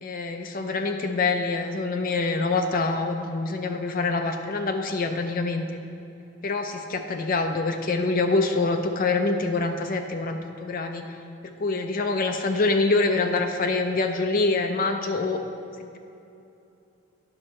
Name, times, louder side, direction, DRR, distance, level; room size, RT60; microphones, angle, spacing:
voice 1, 0.0-5.6 6.4-11.2 11.6-15.4, left 3 dB, 45° left, 5 dB, 0.5 m, -25 dB
9.9 x 6.2 x 4.3 m, 2.7 s
head